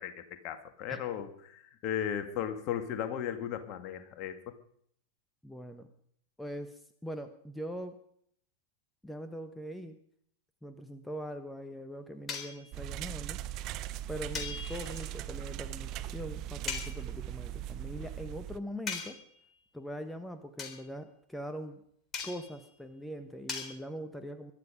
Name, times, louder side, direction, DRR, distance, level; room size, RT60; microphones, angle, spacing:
voice 1, 0.0-4.5, left 9 dB, 40° left, 8 dB, 2.2 m, -36 dB
voice 2, 5.4-5.9 6.4-8.0 9.0-10.0 10.6-13.4 14.1-19.2 19.7-21.8 22.2-24.5, equal, 5° left, 8 dB, 1.3 m, -42 dB
sound 1, 12.3-12.6 14.3-15.1 16.7-17.0 18.9-19.4 20.6-20.8 22.1-22.6 23.5-23.7, left 5 dB, 25° left, 4.0 m, -39 dB
sound 2, 12.7-18.6, right 13 dB, 40° right, 0.8 m, -39 dB
21.5 x 12.5 x 5.2 m, 0.65 s
figure-of-eight pair, 90°, 0 cm